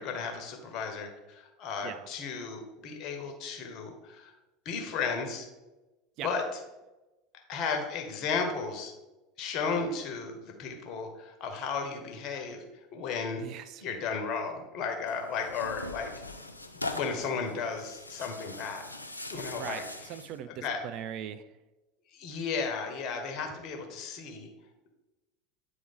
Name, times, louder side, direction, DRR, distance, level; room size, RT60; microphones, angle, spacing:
voice 1, 0.0-4.3 4.6-5.5 6.2-6.4 7.5-8.9 9.4-12.6 12.9-13.4 13.8-16.1 16.9-18.9 19.3-19.9 20.5-20.8 22.1-24.5, left 5 dB, 45° left, 4 dB, 1.3 m, -34 dB
voice 2, 13.4-13.8 19.6-21.5, right 10 dB, 50° right, 12 dB, 0.4 m, -40 dB
Tearing, 15.1-20.4, left 2 dB, 90° left, 0.4 m, -41 dB
9.2 x 3.5 x 3.6 m, 1.1 s
figure-of-eight pair, 75°, 0 cm